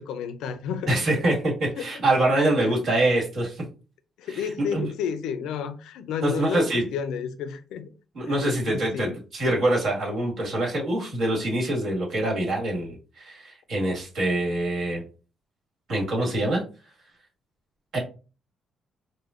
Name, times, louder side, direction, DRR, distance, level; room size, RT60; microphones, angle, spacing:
voice 1, 0.0-1.3 1.8-1.9 2.7-2.8 4.2-7.9 8.3-9.1, left 7 dB, 90° left, 0.5 m, -31 dB
voice 2, 0.9-3.6 4.3-4.9 6.2-6.9 8.1-15.0 15.9-16.6 17.9-18.0, right 1 dB, 65° right, 1.7 m, -25 dB
4.9 x 2.2 x 2.5 m
cardioid pair, 90°, 0 cm